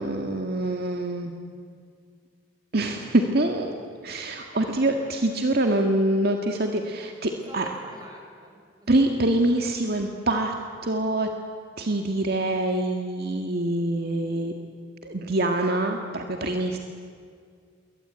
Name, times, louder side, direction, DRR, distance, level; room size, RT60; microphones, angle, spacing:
voice 1, 0.0-1.3 2.7-3.7 4.0-7.7 8.9-10.5 10.8-11.3 11.8-14.5 15.0-16.8, right 1 dB, 55° right, 3 dB, 1.9 m, -25 dB
voice 2, 7.5-9.1, right 1 dB, 20° right, 2 dB, 6.2 m, -45 dB
28.5 x 23.0 x 9.0 m, 2.1 s
head